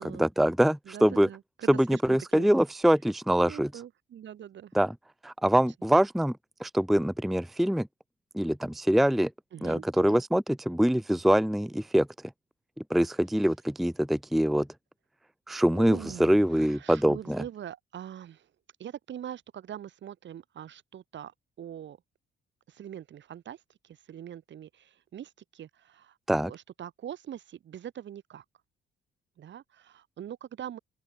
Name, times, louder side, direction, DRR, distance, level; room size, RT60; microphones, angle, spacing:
voice 1, 0.0-1.3 1.7-3.7 4.7-4.9 5.2-7.9 8.3-9.3 9.6-12.1 12.9-14.7 15.5-17.4 26.3-26.5, equal, ahead, 0.6 m, -24 dB
voice 2, 0.9-2.5 3.4-4.7 9.5-10.2 15.7-18.5 18.8-22.0 22.7-28.4 29.4-30.8, right 10 dB, 65° right, 6.2 m, -43 dB
open air
cardioid pair, 90°, 20 cm